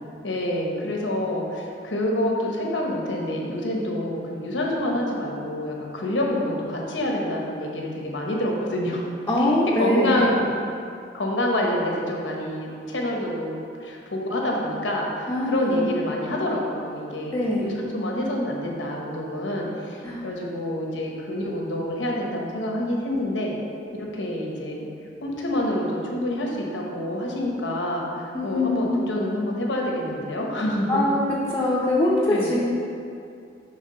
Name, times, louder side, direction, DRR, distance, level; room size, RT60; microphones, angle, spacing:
voice 1, 0.2-9.0 9.4-10.5 11.1-23.5 24.1-24.9 25.2-31.0 32.3-32.5, left 1 dB, 90° left, -1 dB, 1.0 m, -27 dB
voice 2, 9.3-10.2 15.3-15.9 17.3-17.7 20.0-20.2 28.3-29.0 30.9-31.2 31.5-32.6, left 1 dB, 15° left, -6 dB, 0.6 m, -23 dB
5.8 x 3.4 x 5.5 m, 2.4 s
head